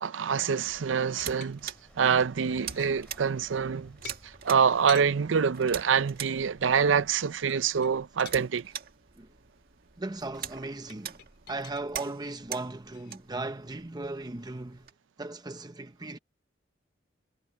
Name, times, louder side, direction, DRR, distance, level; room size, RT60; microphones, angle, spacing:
voice 1, 0.0-4.1 4.4-8.7, right 6 dB, 85° right, 0.5 m, -26 dB
sound 1, 0.6-14.9, right 9 dB, 55° right, 1.8 m, -44 dB
sound 2, 1.0-1.9 2.4-3.0 4.0-5.1 7.4-8.4 10.9-11.9 12.9-13.2, left 8 dB, 65° left, 4.4 m, -46 dB
sound 3, 1.6-7.2, equal, 5° left, 2.5 m, -58 dB
voice 2, 10.0-11.2 11.5-14.9 15.2-16.2, right 2 dB, 20° right, 0.8 m, -37 dB
head